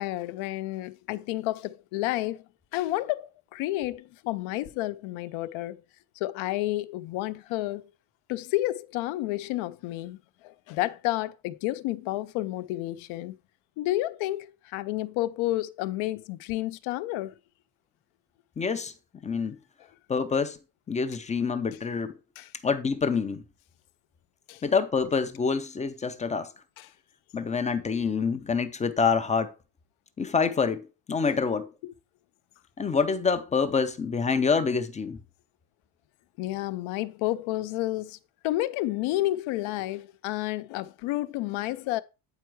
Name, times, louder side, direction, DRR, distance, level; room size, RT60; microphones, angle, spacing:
voice 1, 0.0-2.4 2.7-5.8 6.2-7.8 8.3-10.2 10.4-13.4 13.8-17.3 22.4-22.5 24.5-24.6 26.8-26.9 31.3-31.4 36.4-38.2 38.4-42.0, left 16 dB, 80° left, 0.8 m, -30 dB
voice 2, 18.6-18.9 19.2-19.6 20.1-20.6 20.9-22.1 22.6-23.4 24.6-26.5 27.3-29.5 30.2-31.7 32.8-35.2, left 5 dB, 15° left, 0.3 m, -26 dB
8.9 x 4.6 x 4.6 m
cardioid pair, 175°, 47 cm